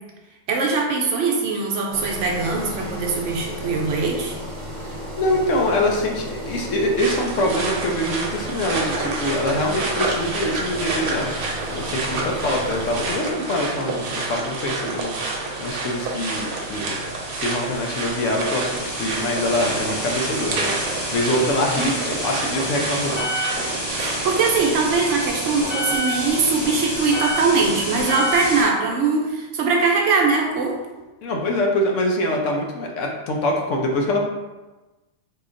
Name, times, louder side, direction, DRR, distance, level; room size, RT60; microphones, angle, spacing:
voice 1, 0.5-4.4 24.0-30.8, right 4 dB, 70° right, 0 dB, 0.9 m, -21 dB
Engine, 1.9-13.1, equal, 35° right, 0.7 m, -34 dB
voice 2, 4.8-23.2 31.2-34.2, left 1 dB, 70° left, 0 dB, 0.9 m, -24 dB
sound 1, 7.0-24.5, right 3 dB, 90° right, 1.1 m, -29 dB
sound 2, 11.8-28.6, equal, 30° left, 1.1 m, -30 dB
3.9 x 2.8 x 2.5 m, 1.1 s
omnidirectional pair, 1.5 m